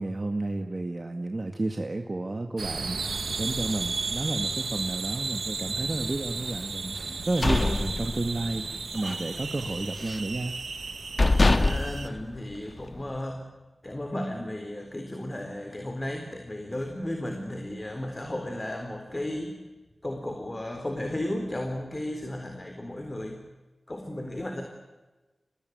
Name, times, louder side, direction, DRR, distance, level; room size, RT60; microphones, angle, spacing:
voice 1, 0.0-10.6, right 2 dB, 45° right, 4 dB, 2.0 m, -31 dB
sound 1, 2.6-12.1, right 4 dB, 80° right, 1.2 m, -34 dB
sound 2, 7.1-8.6 9.0-9.3 9.6-10.4 10.8-10.9 11.2-13.0, left 2 dB, 50° left, 1.5 m, -25 dB
voice 2, 11.5-13.4 13.8-19.6 20.0-23.4 23.9-24.6, left 1 dB, 30° left, 5 dB, 3.9 m, -34 dB
25.5 x 20.0 x 9.5 m, 1.2 s
cardioid pair, 40°, 0 cm